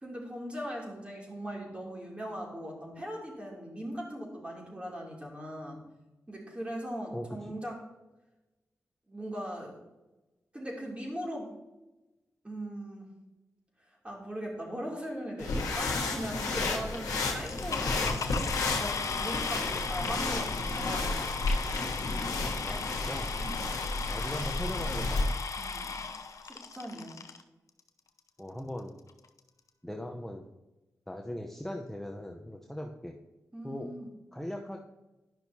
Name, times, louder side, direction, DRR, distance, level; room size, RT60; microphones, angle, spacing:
voice 1, 0.0-5.8 6.3-7.8 9.1-9.7 10.5-11.5 12.4-13.1 14.0-21.5 23.4-23.7 25.6-26.1 26.4-27.1 33.5-34.1, equal, 20° right, -2 dB, 2.8 m, -39 dB
voice 2, 7.1-7.6 19.6-19.8 22.6-23.3 24.1-25.2 28.4-29.0 29.8-30.4 31.1-33.1 33.6-33.9 34.3-34.8, left 1 dB, 5° left, 1 dB, 0.8 m, -39 dB
sound 1, 15.4-25.3, left 3 dB, 90° left, 1.2 m, -32 dB
sound 2, 17.5-27.4 28.2-28.3 28.8-28.9 29.1-29.4, left 5 dB, 65° left, 0.6 m, -36 dB
11.0 x 5.7 x 2.8 m, 1.0 s
cardioid pair, 50°, 6 cm